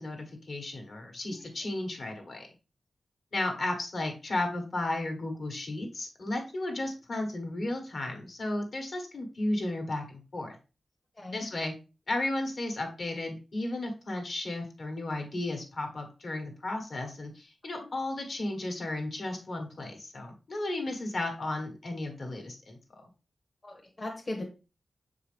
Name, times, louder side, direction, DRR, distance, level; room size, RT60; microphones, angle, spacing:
voice 1, 0.0-2.5 3.3-10.6 11.3-11.7 12.1-22.8, left 2 dB, 50° left, 3 dB, 1.4 m, -34 dB
voice 2, 23.6-24.4, left 1 dB, 25° left, 0 dB, 1.0 m, -37 dB
6.7 x 4.7 x 3.4 m, 0.32 s
wide cardioid pair, 180°, 0 cm